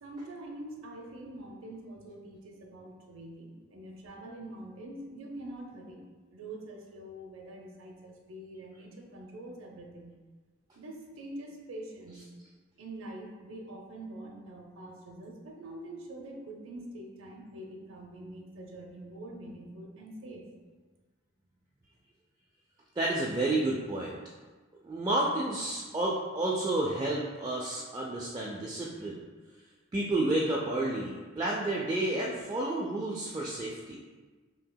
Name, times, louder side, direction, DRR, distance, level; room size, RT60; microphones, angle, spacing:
voice 1, 0.0-6.0 6.3-10.1 10.8-12.2 12.8-20.5, right 1 dB, 80° right, 1 dB, 0.6 m, -45 dB
voice 2, 23.0-24.2 24.8-29.2 29.9-34.0, right 2 dB, 20° right, -4 dB, 0.3 m, -30 dB
5.5 x 2.8 x 2.2 m, 1.4 s
head